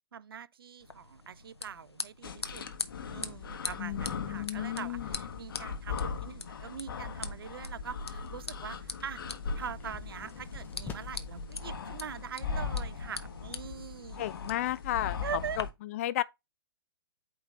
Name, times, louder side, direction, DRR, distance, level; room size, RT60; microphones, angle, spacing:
voice 1, 0.1-2.6 3.1-9.2 9.6-14.3 15.2-15.6, right 8 dB, 65° right, 0.5 m, -43 dB
sound 1, 0.8-15.6, left 3 dB, 90° left, 0.8 m, -44 dB
sound 2, 2.2-15.7, left 5 dB, 60° left, 1.1 m, -39 dB
voice 2, 3.8-5.1 14.2-15.2 15.6-15.7 15.9-16.2, left 14 dB, 35° left, 0.4 m, -33 dB
sound 3, 8.1-11.5, left 4 dB, 15° left, 1.0 m, -48 dB
8.6 x 3.2 x 3.6 m
figure-of-eight pair, 125°, 13 cm